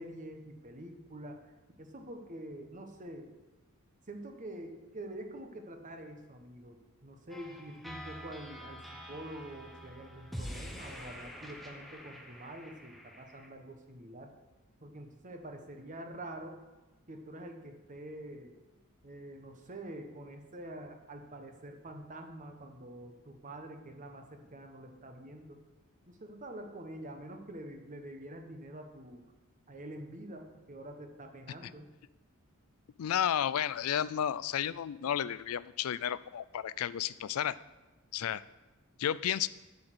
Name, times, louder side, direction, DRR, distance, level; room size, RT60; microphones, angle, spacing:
voice 1, 0.0-1.4 1.8-3.3 4.1-14.3 14.8-16.6 17.1-18.5 19.0-25.6 26.1-29.2 29.7-31.9, right 1 dB, 35° right, 4 dB, 1.1 m, -46 dB
sound 1, 7.3-13.5, equal, ahead, 1.0 m, -46 dB
voice 2, 33.0-37.6 38.1-38.4 39.0-39.5, left 9 dB, 70° left, 18 dB, 0.4 m, -32 dB
8.7 x 6.2 x 7.8 m, 1.1 s
head